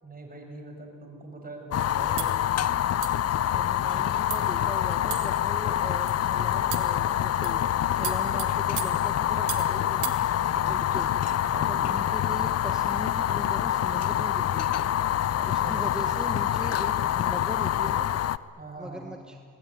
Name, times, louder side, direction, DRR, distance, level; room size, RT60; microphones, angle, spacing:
voice 1, 0.0-2.4 10.5-10.9 11.5-11.8 15.4-15.9 18.6-19.2, right 2 dB, 30° right, 3 dB, 6.5 m, -42 dB
Fire, 1.7-18.4, left 11 dB, 55° left, 0.7 m, -26 dB
sound 1, 2.2-2.4 3.0-3.3 3.9-4.0 4.3-4.5 5.1-5.5 6.1-6.2 6.7-7.0 7.4-7.6 8.0-9.7 10.0-10.2, right 13 dB, 85° right, 1.9 m, -36 dB
voice 2, 3.3-10.2 10.5-14.9 15.2-18.1 18.8-19.4, equal, ahead, 4 dB, 1.5 m, -40 dB
25.5 x 19.5 x 9.6 m, 2.1 s
cardioid pair, 90°, 30 cm